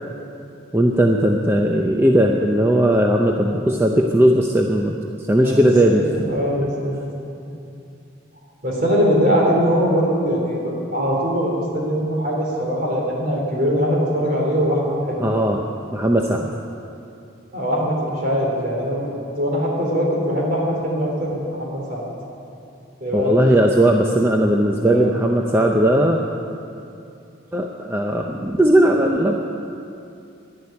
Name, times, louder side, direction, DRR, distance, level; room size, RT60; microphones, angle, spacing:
voice 1, 0.7-4.9 5.3-6.1 15.2-15.6 15.9-16.5 23.1-26.2 27.5-29.3, right 1 dB, 10° right, 1 dB, 0.6 m, -17 dB
voice 2, 6.3-6.9 8.6-15.2 17.5-22.1 23.0-23.3 24.8-25.1, equal, 45° right, -2 dB, 3.6 m, -21 dB
11.5 x 11.0 x 9.7 m, 2.6 s
head